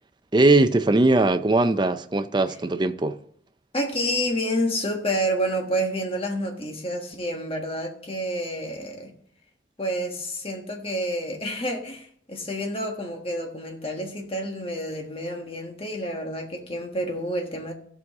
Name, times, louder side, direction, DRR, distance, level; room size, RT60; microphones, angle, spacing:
voice 1, 0.3-3.2, right 2 dB, 25° right, 0.5 m, -20 dB
voice 2, 3.7-9.1 9.8-17.7, equal, 30° left, 1.4 m, -29 dB
15.5 x 6.3 x 3.6 m
head